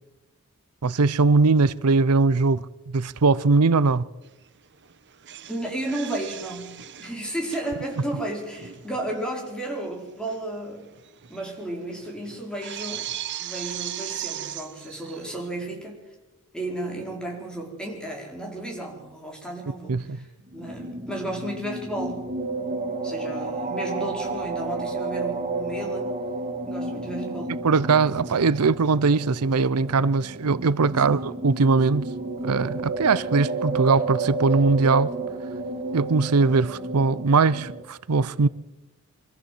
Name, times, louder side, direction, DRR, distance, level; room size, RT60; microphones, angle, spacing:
voice 1, 0.8-4.0 19.9-20.2 27.6-32.1 32.4-35.1 35.9-38.5, right 4 dB, 90° right, 0.6 m, -21 dB
sound 1, 4.2-4.5 4.7-9.3 9.6-9.7 10.3-10.4 10.7-15.5, right 11 dB, 55° right, 0.9 m, -38 dB
voice 2, 5.5-10.8 11.3-13.1 13.4-16.0 16.5-22.3 23.0-26.1 26.7-27.6 31.0-31.2, right 1 dB, 5° left, 4.8 m, -33 dB
sound 2, 20.5-37.8, right 3 dB, 30° right, 1.5 m, -31 dB
24.5 x 14.5 x 7.7 m
head